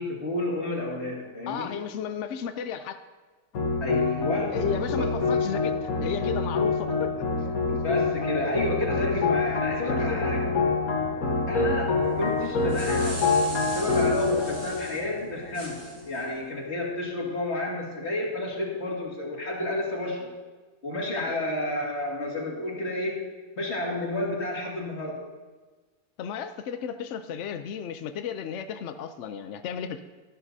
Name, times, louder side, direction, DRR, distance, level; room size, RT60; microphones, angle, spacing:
voice 1, 0.0-1.7 3.8-4.6 5.0-5.4 7.8-10.5 11.5-13.3 13.7-15.8 16.1-20.3 20.8-25.2, left 1 dB, 40° left, -3 dB, 2.3 m, -31 dB
voice 2, 1.5-3.0 4.5-7.1 7.7-7.8 8.8-8.9 9.9-10.2 21.2-21.3 26.2-30.0, left 8 dB, 80° left, 9 dB, 0.6 m, -34 dB
sound 1, 3.5-16.0, left 4 dB, 55° left, 1.6 m, -26 dB
sound 2, 12.4-15.0 15.5-16.2, right 1 dB, 55° right, 3.9 m, -40 dB
13.5 x 11.5 x 2.7 m, 1.3 s
omnidirectional pair, 1.8 m